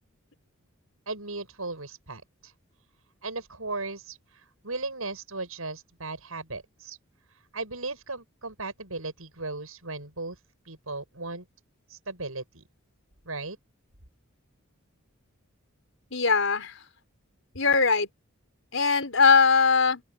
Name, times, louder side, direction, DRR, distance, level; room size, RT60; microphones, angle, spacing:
voice 1, 1.1-2.5 3.2-4.2 4.6-7.0 7.5-10.4 10.7-11.5 11.9-12.6 13.3-13.6, right 3 dB, 80° right, 7.6 m, -36 dB
voice 2, 16.1-16.8 17.6-18.1 18.7-20.0, left 5 dB, 65° left, 5.2 m, -21 dB
open air
head